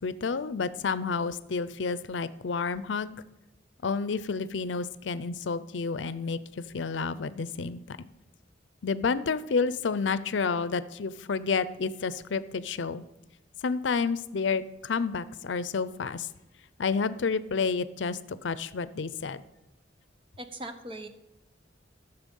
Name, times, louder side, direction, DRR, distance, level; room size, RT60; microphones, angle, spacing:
voice 1, 0.0-3.1 3.8-8.1 8.8-13.0 13.6-16.3 16.8-19.4, left 5 dB, 85° left, 15 dB, 0.5 m, -30 dB
voice 2, 20.4-21.1, right 1 dB, 30° right, 8 dB, 1.0 m, -39 dB
14.0 x 6.9 x 5.4 m, 0.97 s
head